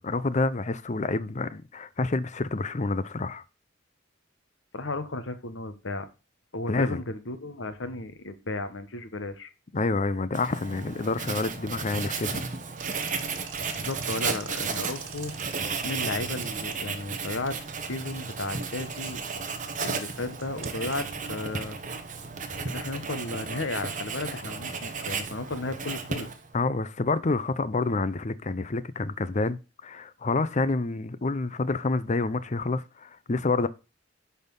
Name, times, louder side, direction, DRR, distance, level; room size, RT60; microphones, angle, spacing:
voice 1, 0.0-3.4 6.7-7.0 9.7-12.4 26.5-33.7, left 3 dB, 40° left, 0.6 m, -28 dB
voice 2, 4.7-6.1 6.5-9.5 13.7-15.3 15.8-17.6 17.8-19.2 19.8-21.8 22.6-26.3, left 2 dB, 75° left, 1.2 m, -34 dB
Writing, 10.3-26.5, right 5 dB, 40° right, 1.2 m, -34 dB
sound 1, 12.8-23.2, right 6 dB, 90° right, 1.9 m, -48 dB
10.5 x 4.3 x 5.4 m
head